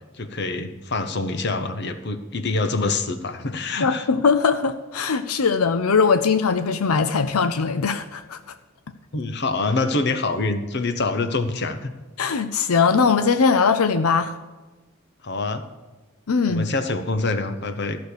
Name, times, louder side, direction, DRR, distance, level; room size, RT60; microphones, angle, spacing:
voice 1, 0.2-4.1 9.1-11.9 15.2-15.6 16.5-18.0, left 3 dB, 50° left, 10 dB, 0.9 m, -25 dB
voice 2, 3.8-8.4 12.2-14.4 16.3-16.7, left 5 dB, 85° left, 10 dB, 0.6 m, -20 dB
14.0 x 6.4 x 6.7 m, 1.2 s
head